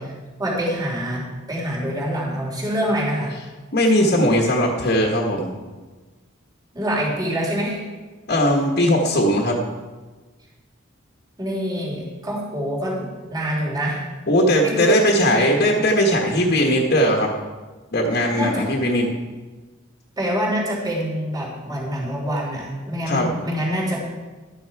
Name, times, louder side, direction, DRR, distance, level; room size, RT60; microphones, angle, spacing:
voice 1, 0.4-3.3 6.7-7.8 11.4-14.0 14.6-15.5 18.3-18.7 20.2-24.0, equal, 20° right, -3 dB, 3.0 m, -25 dB
voice 2, 3.7-5.5 8.3-9.6 14.3-17.3 17.9-19.1 23.0-23.3, equal, 55° left, 0 dB, 1.3 m, -19 dB
12.0 x 9.5 x 4.7 m, 1.3 s
head